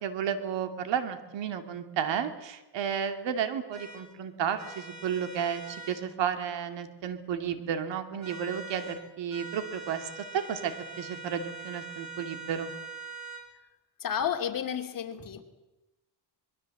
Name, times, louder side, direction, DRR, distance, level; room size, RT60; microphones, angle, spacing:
voice 1, 0.0-12.7, right 8 dB, 80° right, 8 dB, 2.5 m, -32 dB
sound 1, 3.7-4.0 4.6-6.0 8.2-9.0 9.3-13.4, right 4 dB, 40° right, 7.8 m, -43 dB
voice 2, 14.0-15.4, left 8 dB, 50° left, 5 dB, 2.7 m, -31 dB
25.0 x 22.0 x 7.7 m, 1.0 s
cardioid pair, 115°, 43 cm